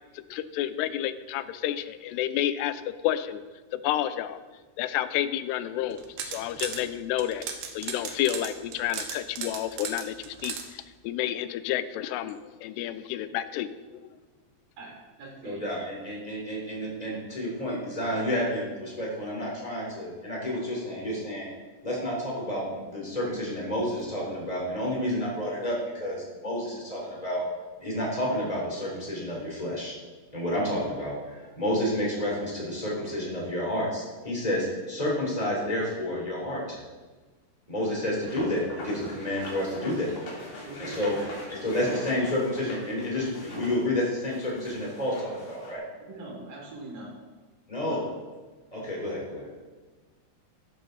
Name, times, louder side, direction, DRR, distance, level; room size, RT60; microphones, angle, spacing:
voice 1, 0.3-3.4 3.7-4.4 4.8-7.5 7.7-14.0, left 12 dB, 85° left, 12 dB, 2.7 m, -30 dB
Trumpet Valves Clicking, 5.9-6.8 7.2-10.6, right 7 dB, 70° right, 2.7 m, -36 dB
voice 2, 14.8-15.6 40.6-41.4 41.8-42.1 43.5-43.6 46.0-47.1 47.8-48.1, right 2 dB, 55° right, -2 dB, 4.9 m, -42 dB
voice 3, 15.4-21.5 21.8-27.5 27.8-29.9 30.3-36.8 37.7-40.1 40.8-41.1 41.5-45.8 47.7-48.0 48.7-49.5, left 1 dB, 10° left, -4 dB, 3.8 m, -30 dB
sound 1, 38.2-45.7, left 2 dB, 60° left, 5.1 m, -43 dB
13.5 x 12.0 x 4.2 m, 1.3 s
omnidirectional pair, 4.9 m